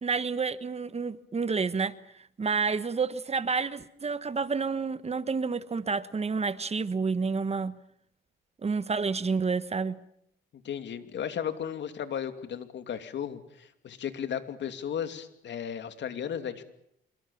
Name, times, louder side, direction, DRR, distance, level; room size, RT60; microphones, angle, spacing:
voice 1, 0.0-1.9 2.4-7.8 8.6-10.0, right 5 dB, 30° right, 1.3 m, -29 dB
voice 2, 10.6-16.6, left 8 dB, 65° left, 2.8 m, -35 dB
27.0 x 24.0 x 7.2 m
cardioid pair, 90°, 20 cm